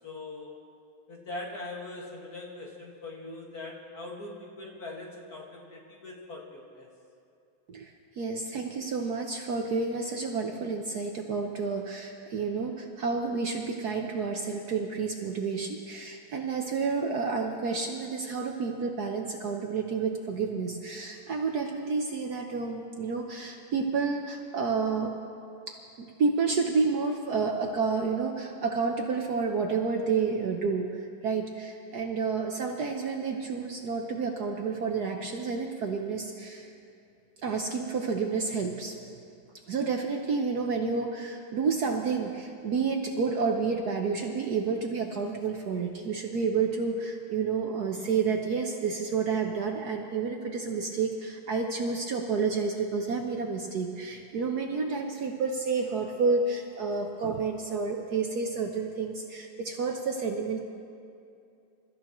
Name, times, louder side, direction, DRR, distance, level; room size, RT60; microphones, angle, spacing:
voice 1, 0.0-0.6 1.1-6.9, left 2 dB, 45° left, -2 dB, 2.4 m, -41 dB
voice 2, 8.2-25.1 25.7-36.7 37.4-39.0 39.7-60.6, right 4 dB, 60° right, 2 dB, 1.2 m, -30 dB
28.0 x 13.5 x 3.1 m, 2.6 s
omnidirectional pair, 2.3 m